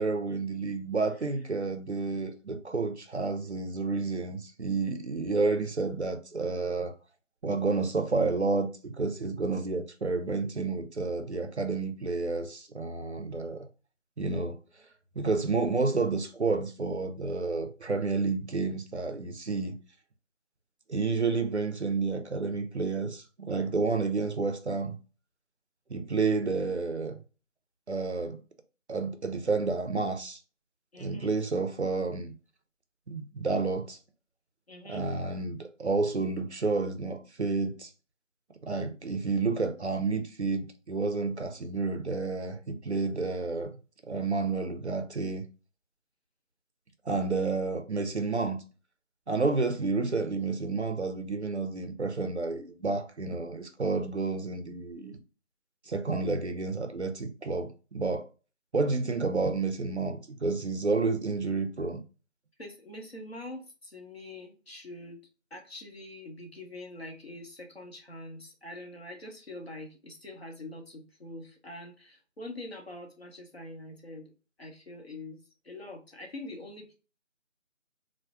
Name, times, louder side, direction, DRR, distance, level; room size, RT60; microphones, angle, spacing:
voice 1, 0.0-6.9 7.4-13.7 14.2-14.6 15.2-19.8 20.9-25.0 25.9-27.2 27.9-28.4 28.9-30.4 31.0-32.3 33.1-34.0 34.8-37.9 38.6-43.7 44.1-45.4 47.1-48.6 49.3-55.2 55.9-58.2 58.7-62.0, right 3 dB, 60° right, 0.5 m, -30 dB
voice 2, 30.9-31.3 34.7-35.1 62.6-65.2 65.5-74.3 74.6-75.4 75.6-76.9, left 2 dB, 50° left, 0.9 m, -44 dB
4.4 x 2.1 x 2.3 m
figure-of-eight pair, 170°, 39 cm